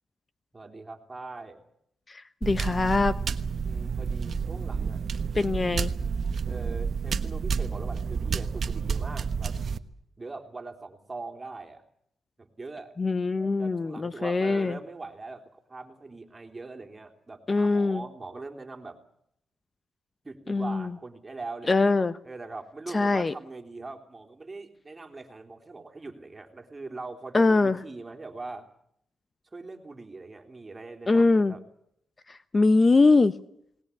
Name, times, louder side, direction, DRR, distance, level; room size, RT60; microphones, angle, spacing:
voice 1, 0.5-1.6 3.6-5.0 6.5-9.6 10.2-11.8 12.4-12.9 13.6-19.0 20.2-21.9 22.2-28.7 29.5-31.6, right 3 dB, 25° right, 3 dB, 3.6 m, -41 dB
voice 2, 2.4-3.1 5.3-5.9 13.0-14.8 17.5-18.0 20.5-20.8 21.7-22.1 22.9-23.3 27.3-27.8 31.1-31.5 32.5-33.3, left 3 dB, 30° left, 13 dB, 0.8 m, -22 dB
sound 1, 2.4-9.8, right 5 dB, 60° right, 1.2 m, -30 dB
20.0 x 19.5 x 8.6 m, 0.72 s
cardioid pair, 75°, 0 cm